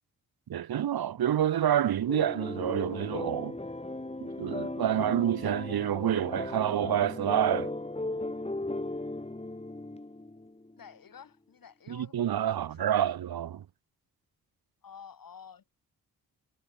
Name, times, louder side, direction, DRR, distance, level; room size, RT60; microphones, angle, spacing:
voice 1, 0.5-3.6 4.2-7.7 11.9-13.6, right 10 dB, 75° right, 1.7 m, -28 dB
sound 1, 2.1-10.8, left 2 dB, 15° left, 5.2 m, -37 dB
voice 2, 10.8-13.1 14.8-15.7, left 7 dB, 65° left, 7.9 m, -50 dB
cardioid pair, 60°, 37 cm